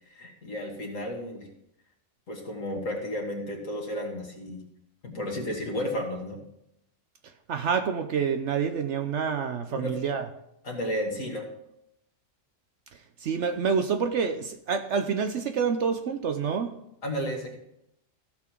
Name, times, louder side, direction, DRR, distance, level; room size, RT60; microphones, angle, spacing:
voice 1, 0.1-1.5 2.3-4.6 5.0-6.4 9.7-10.0 10.6-11.5 17.0-17.6, equal, 75° left, 0 dB, 2.1 m, -33 dB
voice 2, 7.5-10.2 13.2-16.7, right 6 dB, 65° right, 7 dB, 1.0 m, -27 dB
15.5 x 6.1 x 4.5 m, 0.81 s
omnidirectional pair, 1.4 m